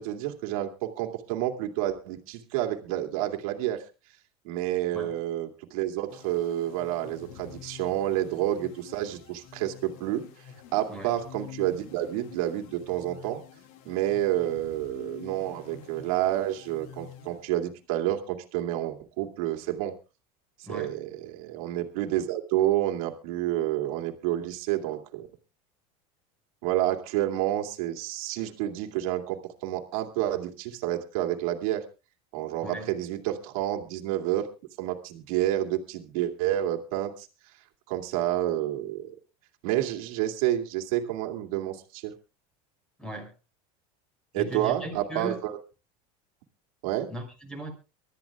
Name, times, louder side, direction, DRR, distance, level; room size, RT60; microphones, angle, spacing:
voice 1, 0.0-3.8 4.4-10.3 10.7-13.4 13.8-20.0 20.7-25.3 26.6-31.8 32.3-34.5 34.8-37.3 37.9-39.1 39.6-42.1 44.3-45.5 46.8-47.1, right 13 dB, 75° right, 3 dB, 2.4 m, -29 dB
sound 1, 6.1-17.9, left 8 dB, 75° left, 2.2 m, -48 dB
voice 2, 32.6-32.9 43.0-43.3 44.3-45.4 47.1-47.7, right 1 dB, 5° left, 4 dB, 6.0 m, -37 dB
24.0 x 13.0 x 2.4 m, 0.30 s
supercardioid pair, 120°, 18 cm